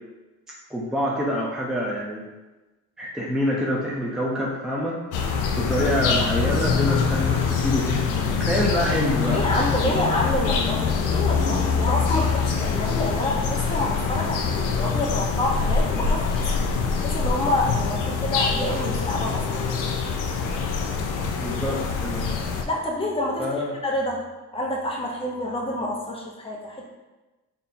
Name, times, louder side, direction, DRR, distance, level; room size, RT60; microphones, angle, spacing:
voice 1, 0.7-2.2 3.0-5.3 5.6-10.0 21.4-22.4 23.4-23.8, equal, ahead, -5 dB, 0.7 m, -26 dB
sound 1, 5.1-22.6, left 5 dB, 90° left, 0.5 m, -24 dB
voice 2, 9.3-16.4 16.9-19.6 22.6-23.5 23.8-24.2 24.5-26.8, left 1 dB, 20° left, -2 dB, 1.0 m, -27 dB
sound 2, 9.7-20.8, left 3 dB, 75° left, 1.2 m, -45 dB
4.2 x 3.6 x 2.7 m, 1.1 s
cardioid pair, 90°, 30 cm